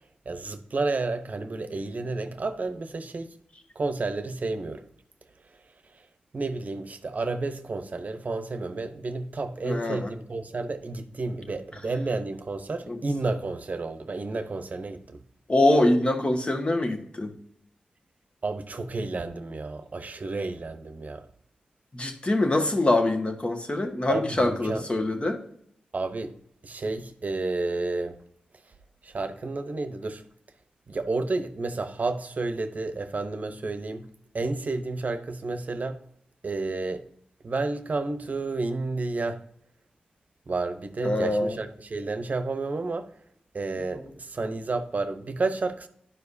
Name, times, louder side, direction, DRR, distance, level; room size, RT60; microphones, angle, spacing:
voice 1, 0.3-3.3 3.8-4.8 6.3-15.2 18.4-21.3 24.1-24.8 25.9-26.3 26.6-28.2 29.0-30.2 30.9-34.1 34.3-36.0 36.4-37.0 37.4-39.4 40.5-43.1 43.5-45.9, right 3 dB, 55° right, 0.8 m, -31 dB
voice 2, 9.6-10.1 12.9-13.0 15.5-17.3 21.9-25.4 41.0-41.6 43.9-44.1, left 2 dB, 35° left, 1.5 m, -24 dB
11.5 x 4.8 x 2.7 m
cardioid pair, 40°, 3 cm